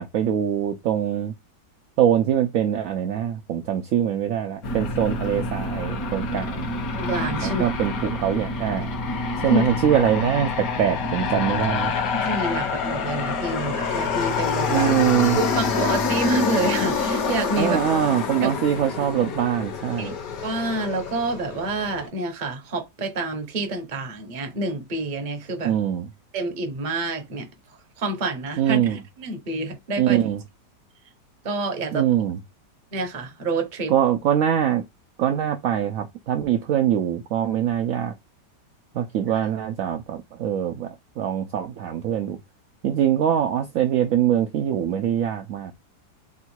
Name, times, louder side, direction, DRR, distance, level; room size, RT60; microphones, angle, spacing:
voice 1, 0.0-1.3 2.0-6.7 7.4-8.9 9.4-11.9 14.7-15.4 17.6-20.2 25.6-26.1 28.6-29.0 30.0-30.4 31.9-32.4 33.9-34.8 35.2-38.1 38.9-42.4 42.8-45.7, right 10 dB, 75° right, 0.7 m, -23 dB
Aircraft, 4.6-22.1, left 4 dB, 60° left, 1.3 m, -27 dB
voice 2, 7.0-7.7 9.5-9.7 12.2-14.9 15.4-17.8 18.4-18.5 20.0-20.1 20.4-25.7 26.3-27.5 28.0-30.3 31.4-32.1 32.9-33.9 39.3-39.5, right 2 dB, 35° right, 0.8 m, -28 dB
3.6 x 2.3 x 4.4 m
omnidirectional pair, 1.9 m